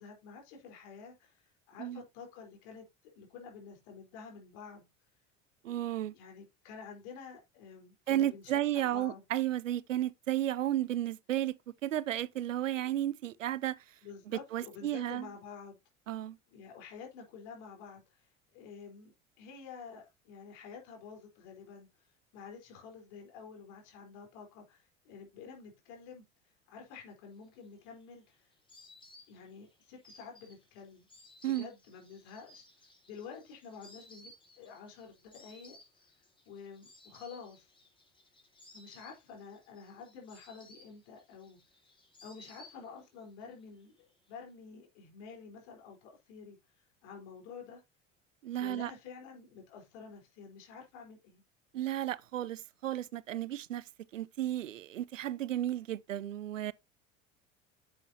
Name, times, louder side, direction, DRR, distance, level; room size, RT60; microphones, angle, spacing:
voice 1, 0.0-4.9 6.1-9.2 14.0-15.8 16.5-18.3 18.5-21.9 22.3-26.2 26.7-28.5 29.3-31.1 31.4-32.6 33.1-35.8 36.5-37.7 38.7-41.6 42.2-46.6 47.0-47.8 48.6-51.4, left 6 dB, 65° left, 4.1 m, -49 dB
voice 2, 5.6-6.1 8.1-13.8 14.3-15.3 16.1-16.4 31.4-31.7 48.4-48.9 51.7-53.8 54.1-56.7, right 12 dB, 85° right, 0.6 m, -33 dB
Insect, 27.5-43.2 43.5-44.3, left 2 dB, 15° left, 3.7 m, -59 dB
9.6 x 7.7 x 2.8 m
figure-of-eight pair, 70°, 37 cm